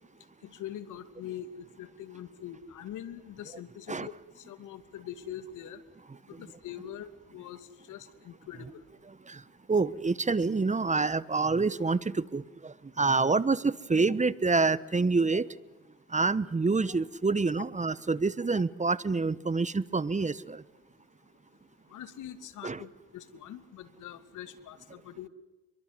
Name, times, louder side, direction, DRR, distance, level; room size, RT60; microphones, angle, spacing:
voice 1, 0.5-4.1 4.5-5.8 6.4-7.6 7.9-8.7 15.3-15.4 21.9-25.3, left 10 dB, 70° left, 2.5 m, -43 dB
voice 2, 9.7-15.5 16.1-20.6 22.6-22.8, right 4 dB, 25° right, 1.2 m, -27 dB
28.5 x 23.0 x 8.1 m
supercardioid pair, 60°, 31 cm